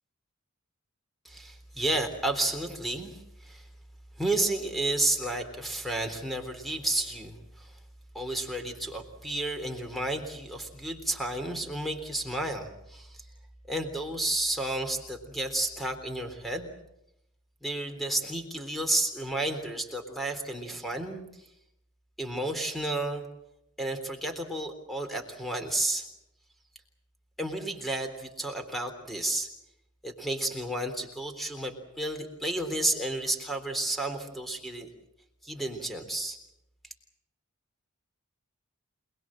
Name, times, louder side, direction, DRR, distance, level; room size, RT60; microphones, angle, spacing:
voice 1, 1.2-3.7 4.2-7.8 8.1-13.2 13.7-16.7 17.6-21.2 22.2-23.3 23.8-26.1 27.4-29.5 30.0-34.9 35.4-36.4, right 1 dB, ahead, 6 dB, 3.6 m, -31 dB
27.5 x 20.5 x 7.6 m, 0.84 s
head